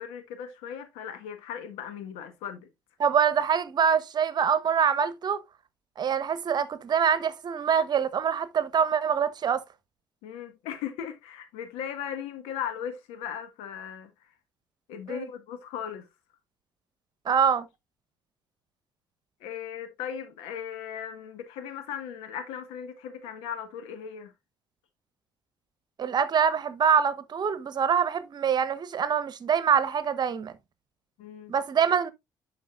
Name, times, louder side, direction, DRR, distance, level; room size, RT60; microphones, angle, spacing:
voice 1, 0.0-2.7 10.2-14.1 14.9-16.1 19.4-24.3 31.2-31.5, left 8 dB, 75° left, 1.6 m, -37 dB
voice 2, 3.0-5.4 6.0-9.6 15.1-15.3 17.2-17.7 26.0-30.5 31.5-32.1, right 7 dB, 45° right, 1.1 m, -25 dB
11.0 x 5.2 x 2.5 m
hypercardioid pair, 55°, 10 cm